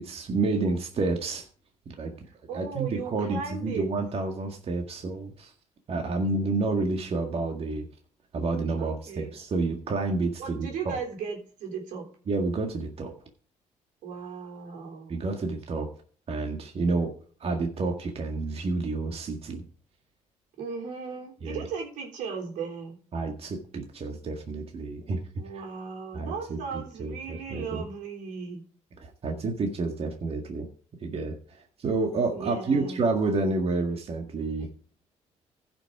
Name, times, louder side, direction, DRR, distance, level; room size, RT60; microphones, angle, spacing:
voice 1, 0.0-1.5 1.9-2.1 2.5-5.5 5.9-7.9 8.3-11.0 12.3-13.1 15.1-15.9 16.3-17.1 17.4-19.6 21.4-21.7 23.1-25.6 26.1-27.9 29.0-30.7 31.0-31.4 31.8-34.7, right 3 dB, 50° right, 3 dB, 1.9 m, -29 dB
voice 2, 2.5-3.9 8.8-9.3 10.4-12.1 14.0-15.2 20.6-23.0 25.4-28.6 32.3-33.0 34.6-34.7, right 5 dB, 90° right, 1 dB, 3.8 m, -36 dB
15.0 x 6.2 x 4.9 m, 0.43 s
cardioid pair, 90°, 13 cm